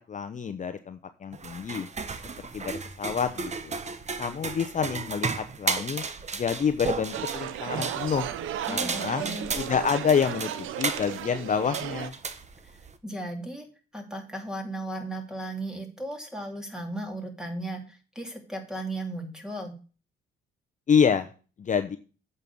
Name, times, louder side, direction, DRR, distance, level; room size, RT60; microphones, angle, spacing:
voice 1, 0.1-1.9 2.5-3.7 4.2-6.0 6.3-8.3 8.7-9.2 9.6-12.1 20.9-21.3 21.6-22.0, left 7 dB, 40° left, 9 dB, 0.8 m, -27 dB
sound 1, 1.3-13.0, right 4 dB, 35° right, 1.1 m, -34 dB
sound 2, 7.1-12.1, right 11 dB, 85° right, 0.9 m, -35 dB
voice 2, 8.7-9.5 13.0-19.7, right 1 dB, 5° right, 3 dB, 2.9 m, -36 dB
8.3 x 5.5 x 6.9 m, 0.35 s
cardioid pair, 90°, 20 cm